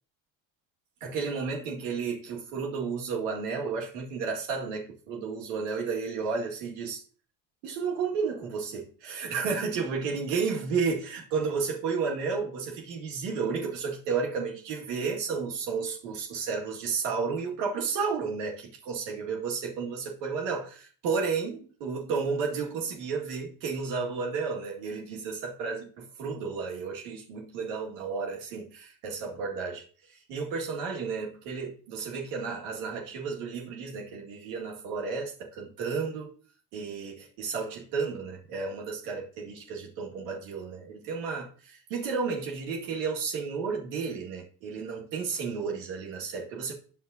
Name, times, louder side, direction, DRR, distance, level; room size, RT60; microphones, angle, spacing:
voice 1, 1.0-7.0 7.6-36.3 36.7-46.7, right 5 dB, 75° right, 2.1 m, -32 dB
9.5 x 6.8 x 2.7 m
hypercardioid pair, 65°, 50 cm